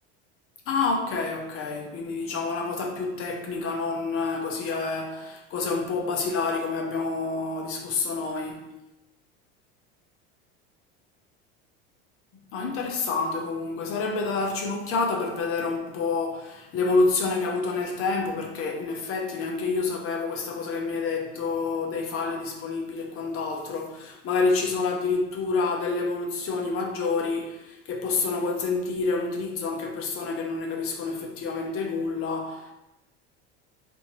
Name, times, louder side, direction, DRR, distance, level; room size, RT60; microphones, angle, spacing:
voice 1, 0.7-8.7 12.5-32.7, left 4 dB, 45° left, 0.8 m, -28 dB
4.3 x 2.8 x 3.0 m
supercardioid pair, 115°, 30 cm